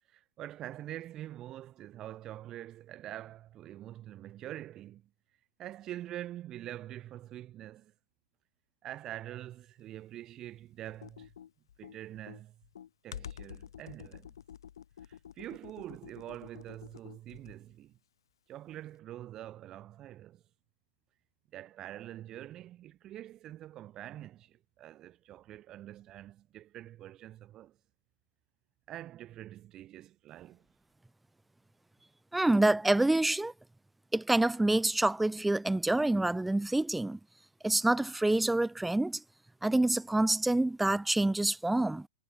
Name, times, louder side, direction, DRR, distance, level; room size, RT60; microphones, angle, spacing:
voice 1, 0.1-5.0 5.6-7.9 8.8-11.3 11.8-12.5 13.0-14.3 15.0-17.9 18.5-20.4 21.5-27.8 28.9-30.6, right 13 dB, 20° right, 2.7 m, -45 dB
Computer keyboard, 10.9-17.7, left 9 dB, 90° left, 6.9 m, -49 dB
voice 2, 32.3-33.5 34.1-37.2 37.6-39.2 39.6-42.1, right 2 dB, 5° right, 0.5 m, -27 dB
supercardioid pair, 165°, 2 cm